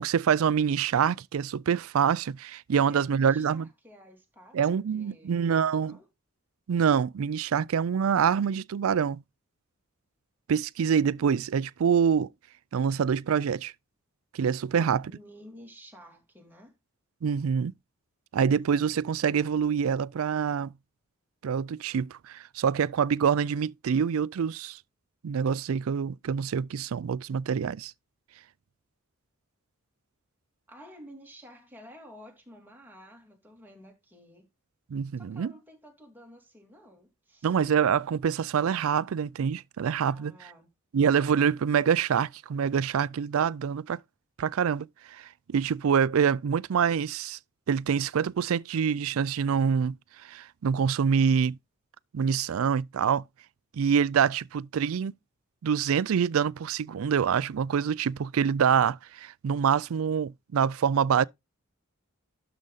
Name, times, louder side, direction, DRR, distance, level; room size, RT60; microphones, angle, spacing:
voice 1, 0.0-3.7 4.5-6.0 6.7-9.2 10.5-12.3 12.7-13.7 14.3-15.1 17.2-17.7 18.3-20.7 21.4-24.8 25.2-27.9 34.9-35.5 37.4-40.3 40.9-44.0 44.4-47.4 47.7-50.0 50.2-51.6 52.1-53.2 53.7-55.1 55.6-61.2, right 7 dB, 70° right, 0.4 m, -26 dB
voice 2, 2.7-6.1 14.4-16.7 30.7-34.5 35.2-37.5 40.0-40.7, equal, 10° right, 2.8 m, -51 dB
12.0 x 5.0 x 4.0 m
head